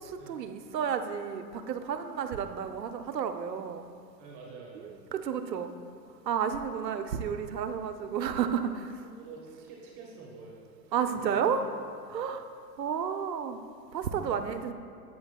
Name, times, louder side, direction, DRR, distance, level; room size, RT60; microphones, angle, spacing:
voice 1, 0.0-3.9 4.7-5.7 6.2-9.0 10.9-11.6 12.1-12.5 12.8-13.6 13.9-14.7, right 7 dB, 90° right, 8 dB, 0.8 m, -31 dB
voice 2, 4.2-5.0 9.2-10.6 10.8-11.5, right 4 dB, 40° right, -2 dB, 1.4 m, -47 dB
11.5 x 8.6 x 2.3 m, 2.3 s
hypercardioid pair, 120°, 48 cm